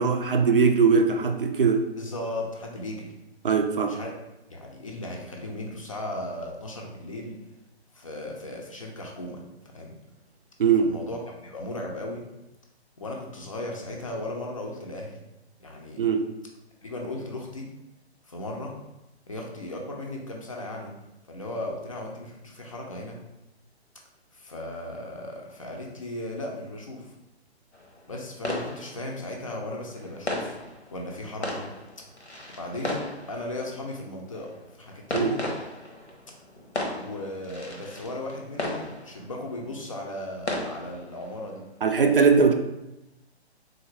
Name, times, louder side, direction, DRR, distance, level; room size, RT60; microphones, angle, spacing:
voice 1, 0.0-1.9 3.4-4.0 10.6-10.9 16.0-16.3 35.1-35.4 41.8-42.5, right 5 dB, 55° right, 5 dB, 0.4 m, -21 dB
voice 2, 2.0-3.1 3.9-4.1 4.5-7.4 7.9-9.4 9.7-9.9 10.8-12.3 13.0-15.2 15.6-16.1 16.8-17.7 18.3-18.7 19.3-20.9 21.3-23.2 24.3-27.1 28.1-30.6 30.9-31.6 32.6-34.5 34.8-35.5 36.9-41.7 42.3-42.5, left 1 dB, 30° left, 0 dB, 0.4 m, -36 dB
sound 1, 27.7-41.8, left 2 dB, 90° left, 0.9 m, -36 dB
3.7 x 2.4 x 3.0 m, 0.93 s
figure-of-eight pair, 135°, 33 cm